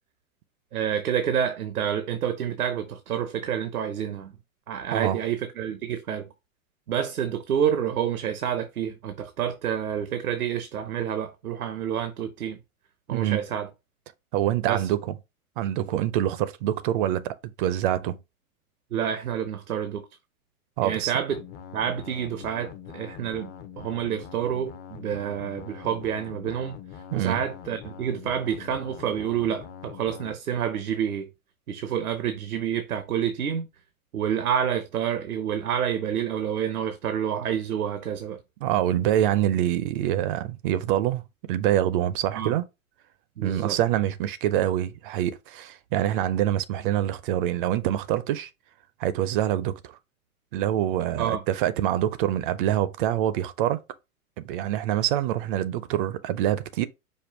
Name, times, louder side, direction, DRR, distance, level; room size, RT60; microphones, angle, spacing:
voice 1, 0.7-4.3 4.7-6.3 6.9-12.6 13.1-13.7 14.7-14.8 18.9-20.0 20.8-21.4 21.7-26.8 27.1-31.3 31.7-33.7 34.1-38.4 42.3-42.6 43.4-43.8 51.1-51.4, right 9 dB, 90° right, 0.7 m, -28 dB
voice 2, 14.3-15.1 15.6-18.2 20.8-21.1 27.1-27.4 38.6-42.7 43.4-48.5 49.0-49.7 50.5-53.8 54.4-56.9, right 12 dB, 40° right, 0.4 m, -25 dB
sound 1, 21.3-30.3, left 8 dB, 25° left, 0.5 m, -43 dB
5.3 x 2.2 x 4.4 m
hypercardioid pair, 110°, 43 cm